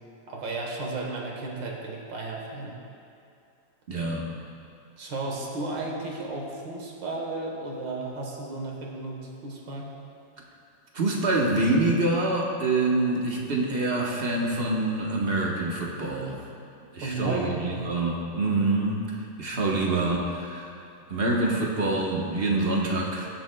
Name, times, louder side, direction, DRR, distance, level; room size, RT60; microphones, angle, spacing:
voice 1, 0.3-2.7 5.0-9.9 17.0-17.8, right 2 dB, 70° right, -1 dB, 2.0 m, -33 dB
voice 2, 3.9-4.3 10.9-16.4 16.9-19.0 19.4-20.7 21.1-23.3, right 2 dB, 35° right, -2 dB, 1.1 m, -26 dB
22.0 x 7.4 x 2.3 m, 2.5 s
omnidirectional pair, 2.2 m